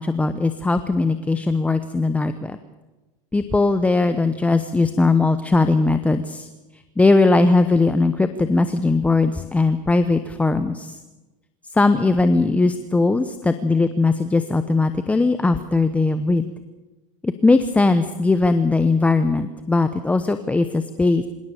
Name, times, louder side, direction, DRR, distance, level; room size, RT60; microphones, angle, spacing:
voice 1, 0.0-2.6 3.3-6.5 7.0-11.0 11.7-16.5 17.2-21.3, left 3 dB, 10° left, 10 dB, 0.9 m, -19 dB
26.0 x 17.5 x 7.0 m, 1.1 s
supercardioid pair, 120°, 17 cm